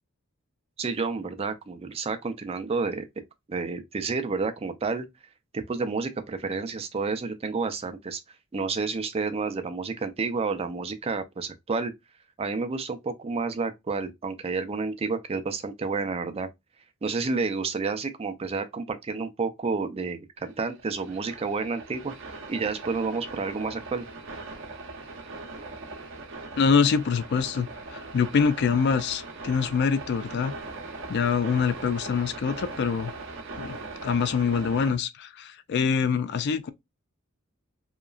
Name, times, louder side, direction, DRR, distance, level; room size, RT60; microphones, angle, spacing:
voice 1, 0.8-3.1 3.5-5.1 5.5-8.2 8.5-11.9 12.4-16.5 17.0-24.1, right 4 dB, 30° right, 0.4 m, -30 dB
sound 1, 20.4-35.0, right 3 dB, 65° right, 0.7 m, -40 dB
voice 2, 26.6-30.5 31.1-33.1 33.6-33.8 34.0-36.7, left 6 dB, 55° left, 0.3 m, -25 dB
2.9 x 2.3 x 2.3 m
head